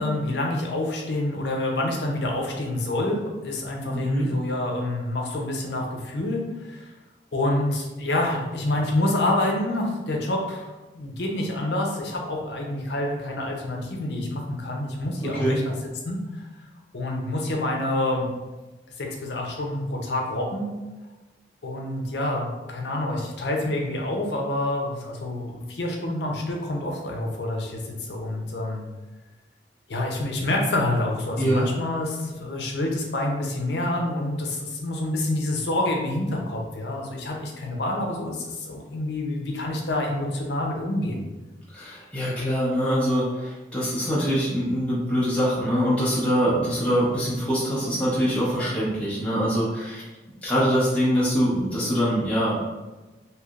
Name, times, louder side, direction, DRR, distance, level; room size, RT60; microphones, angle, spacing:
voice 1, 0.0-6.9 7.3-15.7 16.0-16.4 16.9-18.3 19.0-20.7 21.6-28.8 29.9-41.2, left 1 dB, 70° left, 0 dB, 0.6 m, -27 dB
voice 2, 3.9-4.3 15.2-15.6 31.4-31.7 41.7-50.0 50.4-52.7, equal, 5° left, -9 dB, 0.7 m, -24 dB
3.2 x 2.9 x 2.4 m, 1.2 s
head